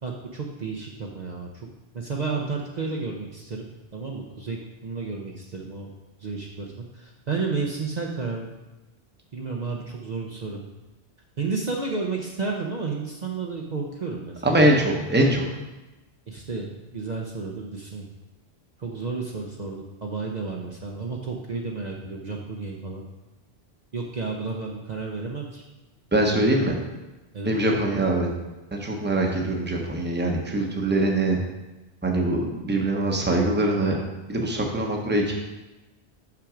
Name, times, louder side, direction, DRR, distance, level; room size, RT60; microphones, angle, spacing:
voice 1, 0.0-1.7 1.9-3.6 3.9-5.9 6.2-8.5 9.3-10.6 11.4-14.7 16.3-18.1 18.8-23.0 23.9-25.6 26.3-26.6 27.3-27.6, right 4 dB, 45° right, -1 dB, 0.7 m, -32 dB
voice 2, 14.4-15.4 26.1-26.7 27.4-28.3 28.7-31.4 32.0-34.0 34.3-35.3, right 1 dB, 10° right, 0 dB, 0.9 m, -23 dB
6.0 x 5.8 x 5.0 m, 1.1 s
omnidirectional pair, 1.1 m